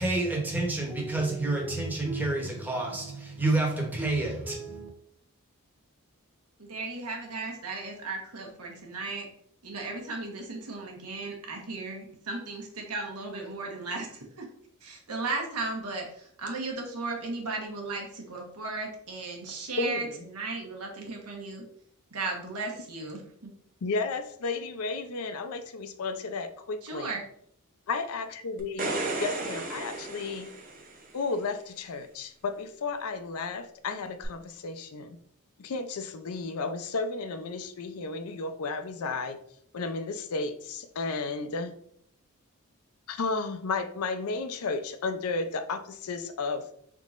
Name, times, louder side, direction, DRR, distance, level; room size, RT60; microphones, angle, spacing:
voice 1, 0.0-4.9, right 2 dB, 10° right, -1 dB, 0.8 m, -29 dB
voice 2, 6.6-9.3 9.6-14.5 14.8-21.6 22.1-23.5 26.8-27.2, right 3 dB, 85° right, 1 dB, 1.0 m, -36 dB
voice 3, 19.8-20.2 23.8-27.1 27.9-28.9 29.2-30.5 31.1-35.2 35.6-39.4 39.7-41.8 43.1-46.7, left 4 dB, 70° left, 9 dB, 0.5 m, -33 dB
sound 1, 28.6-31.1 34.2-34.3, right 3 dB, 35° right, 0.6 m, -34 dB
4.1 x 3.6 x 2.4 m, 0.66 s
head